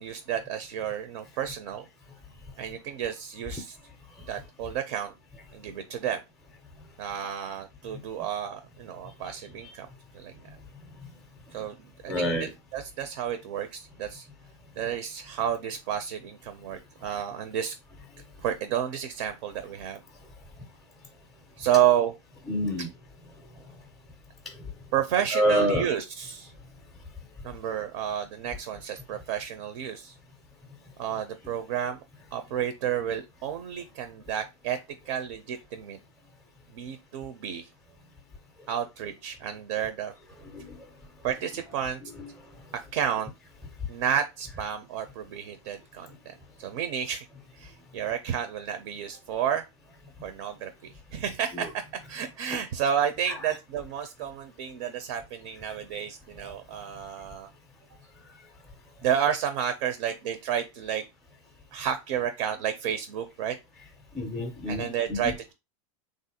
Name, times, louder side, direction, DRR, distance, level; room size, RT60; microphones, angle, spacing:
voice 1, 0.0-1.9 2.6-3.8 4.3-5.1 5.5-6.2 7.0-9.9 10.1-10.3 11.5-11.8 12.0-14.3 14.8-17.7 18.4-20.0 21.6-22.1 24.9-26.5 27.4-30.1 31.0-32.0 32.3-34.8 35.1-36.0 36.7-37.7 38.7-40.1 41.2-42.0 42.9-43.3 43.9-47.3 47.6-49.6 50.2-57.5 59.0-61.0 61.7-63.6 64.7-65.5, right 9 dB, 60° right, 0.5 m, -31 dB
voice 2, 12.1-12.5 22.5-22.9 24.5-24.6 25.3-25.9 40.4-40.8 42.0-42.3 51.5-51.7 52.5-52.6 53.3-53.4 64.1-65.3, equal, ahead, 0.4 m, -28 dB
3.3 x 2.5 x 2.7 m
supercardioid pair, 145°, 16 cm